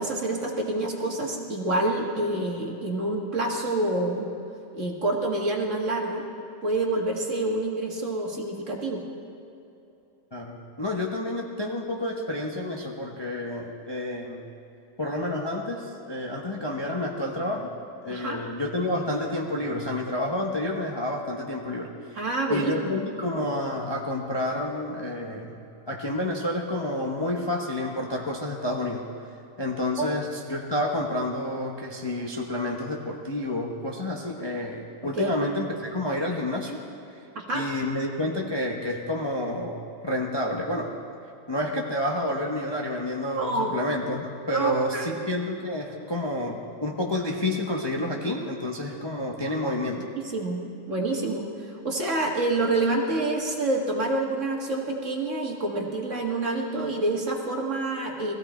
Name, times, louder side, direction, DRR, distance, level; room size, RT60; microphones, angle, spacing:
voice 1, 0.0-4.3 4.7-6.2 6.6-9.0 18.1-18.4 22.2-22.7 30.0-30.1 35.1-35.4 37.4-37.7 43.4-43.7 44.5-45.1 50.2-50.6 50.9-58.3, right 2 dB, 45° right, -1 dB, 2.0 m, -27 dB
voice 2, 10.3-14.5 15.0-17.7 18.0-21.9 22.5-29.1 29.6-36.8 37.5-40.9 41.5-50.1, left 1 dB, 20° left, -1 dB, 0.9 m, -29 dB
21.0 x 15.5 x 4.4 m, 2.8 s
omnidirectional pair, 1.9 m